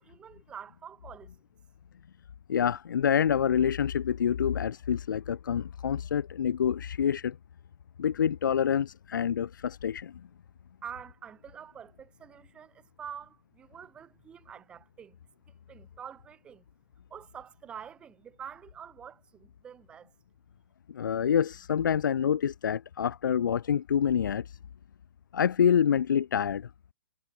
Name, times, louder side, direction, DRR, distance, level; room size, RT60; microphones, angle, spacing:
voice 1, 0.0-1.4 10.8-15.2 15.7-16.6 17.1-20.1, right 8 dB, 10° right, 3.4 m, -46 dB
voice 2, 2.5-7.4 8.0-10.1 20.9-24.6 25.3-26.7, left 8 dB, 85° left, 0.4 m, -27 dB
hypercardioid pair, 170°, 10 cm